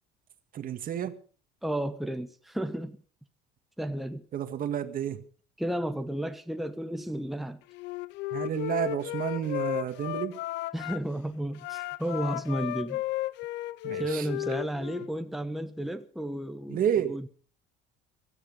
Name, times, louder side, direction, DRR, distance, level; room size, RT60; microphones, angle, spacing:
voice 1, 0.5-1.2 4.3-5.2 8.3-10.4 13.8-14.3 15.0-15.1 16.7-17.2, right 9 dB, 50° right, 1.9 m, -30 dB
voice 2, 1.6-3.0 3.8-4.2 5.6-7.6 10.7-13.0 13.9-17.3, right 1 dB, ahead, 1.2 m, -33 dB
Wind instrument woodwind instrument, 7.7-11.0 11.5-15.1, left 16 dB, 70° left, 0.6 m, -34 dB
16.5 x 13.5 x 5.5 m
supercardioid pair, 105°, 19 cm